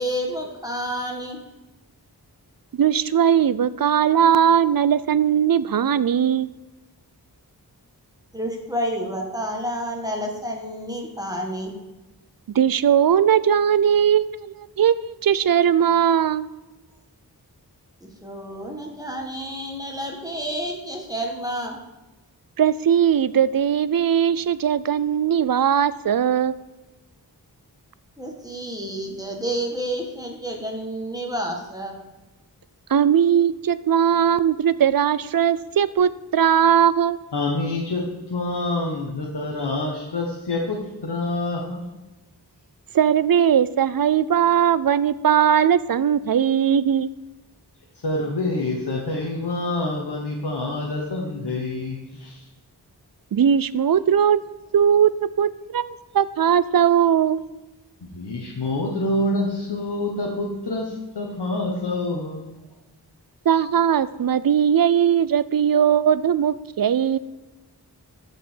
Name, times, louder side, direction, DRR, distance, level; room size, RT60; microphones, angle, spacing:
voice 1, 0.0-1.4 8.3-11.7 18.0-21.8 28.2-32.0, equal, 10° right, 0 dB, 1.7 m, -30 dB
voice 2, 2.8-6.5 12.5-16.5 22.6-26.6 32.9-37.2 42.9-47.1 53.3-54.4 54.7-57.4 63.5-67.2, right 8 dB, 60° right, 17 dB, 0.5 m, -19 dB
voice 3, 37.3-41.9 48.0-52.4 58.0-62.6, left 2 dB, 85° left, -2 dB, 1.2 m, -27 dB
13.5 x 5.0 x 4.6 m, 1.1 s
wide cardioid pair, 55°, 39 cm